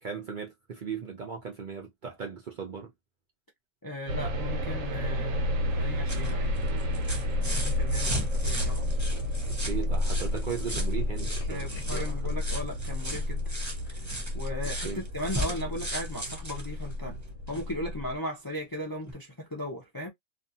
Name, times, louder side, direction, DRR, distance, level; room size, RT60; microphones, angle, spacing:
voice 1, 0.0-2.9 9.6-12.3 14.8-15.0, right 6 dB, 55° right, 0.6 m, -37 dB
voice 2, 3.8-5.4 5.7-6.6 7.4-8.9 11.5-13.5 13.9-14.1 14.3-17.2 17.5-20.1, left 1 dB, 30° left, 0.4 m, -37 dB
sound 1, 4.1-18.2, left 1 dB, 90° right, 1.1 m, -31 dB
sound 2, 5.7-17.7 19.1-19.2, right 1 dB, 15° right, 0.8 m, -38 dB
Tools, 6.0-6.4 7.0-7.1 7.3-7.4 7.7-7.9 8.2-8.3 8.5-12.0, left 6 dB, 55° left, 0.9 m, -54 dB
2.6 x 2.3 x 2.6 m
omnidirectional pair, 1.3 m